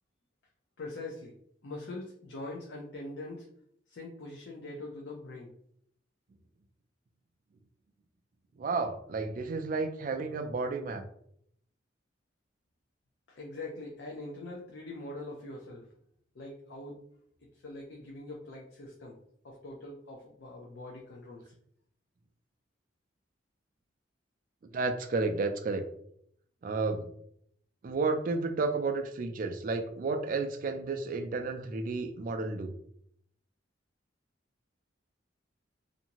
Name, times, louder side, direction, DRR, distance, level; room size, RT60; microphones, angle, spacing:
voice 1, 0.8-1.3 1.6-3.4 3.9-5.5 13.4-15.8 16.4-17.0 17.6-19.1 19.4-21.4, left 2 dB, 60° left, -1 dB, 0.5 m, -43 dB
voice 2, 8.6-11.0 24.7-25.8 26.6-27.0 27.8-32.7, right 3 dB, 45° right, 6 dB, 0.3 m, -32 dB
2.6 x 2.5 x 2.8 m, 0.69 s
head